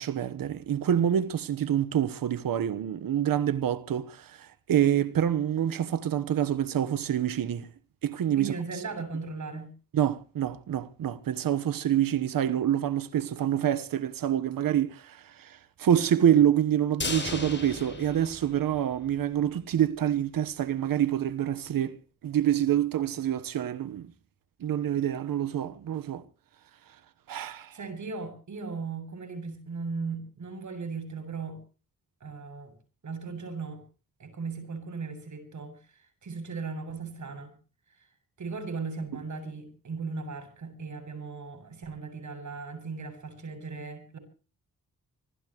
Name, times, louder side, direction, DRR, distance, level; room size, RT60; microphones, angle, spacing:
voice 1, 0.0-7.7 8.0-8.8 9.9-22.0 22.2-24.1 24.6-26.2 27.3-27.8, right 10 dB, 85° right, 1.2 m, -27 dB
voice 2, 8.4-9.7 27.7-31.6 32.2-32.7 33.0-33.8 34.2-35.8 36.2-37.5 38.4-44.2, right 4 dB, 60° right, 7.9 m, -37 dB
sound 1, 17.0-19.2 19.5-19.6 19.9-20.0, left 3 dB, 35° left, 6.6 m, -36 dB
25.0 x 17.0 x 3.1 m
cardioid pair, 80°, 33 cm